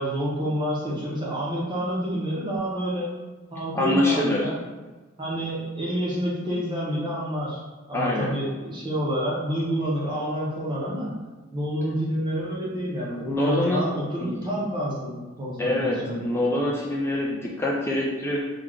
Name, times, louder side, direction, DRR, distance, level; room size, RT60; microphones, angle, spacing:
voice 1, 0.0-3.1 3.5-4.6 5.2-7.6 7.9-11.2 11.5-16.2, equal, 25° right, -6 dB, 0.7 m, -28 dB
voice 2, 3.7-4.5 7.9-8.3 13.2-13.9 14.2-14.5 15.6-18.4, left 1 dB, 10° left, -3 dB, 0.4 m, -25 dB
3.1 x 2.2 x 3.7 m, 1.3 s
head